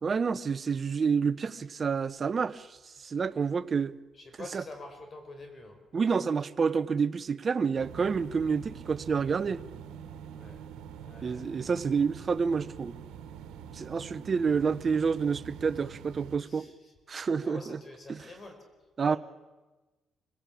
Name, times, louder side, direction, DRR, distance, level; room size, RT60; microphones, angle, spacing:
voice 1, 0.0-2.7 3.0-4.0 4.4-4.6 5.9-9.6 11.2-12.9 13.7-16.7 17.1-17.8 18.1-18.2 19.0-19.2, right 5 dB, 40° right, 0.9 m, -28 dB
voice 2, 4.1-5.8 10.4-10.6 11.0-11.5 16.5-16.7 17.4-18.6 19.0-19.2, left 2 dB, 35° left, 4.8 m, -46 dB
sound 1, 7.7-16.3, right 8 dB, 90° right, 1.6 m, -45 dB
25.0 x 17.0 x 8.6 m
cardioid pair, 90°, 0 cm